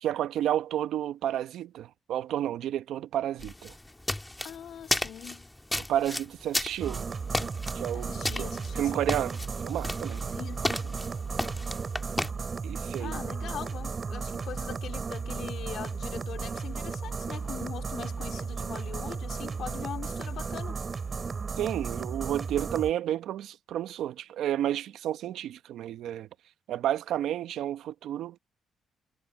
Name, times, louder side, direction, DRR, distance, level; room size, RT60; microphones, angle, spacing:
voice 1, 0.0-3.7 5.9-7.1 7.7-8.1 8.4-8.5 8.8-9.4 9.6-10.3 12.6-13.2 21.6-26.3 26.7-28.4, right 11 dB, 80° right, 0.8 m, -31 dB
sound 1, 3.4-12.3, left 1 dB, 10° left, 1.7 m, -34 dB
voice 2, 4.4-5.5 7.9-9.1 10.3-11.1 13.0-20.8, left 9 dB, 70° left, 2.8 m, -42 dB
sound 2, 6.8-22.9, right 5 dB, 35° right, 3.7 m, -34 dB
cardioid pair, 90°, 0 cm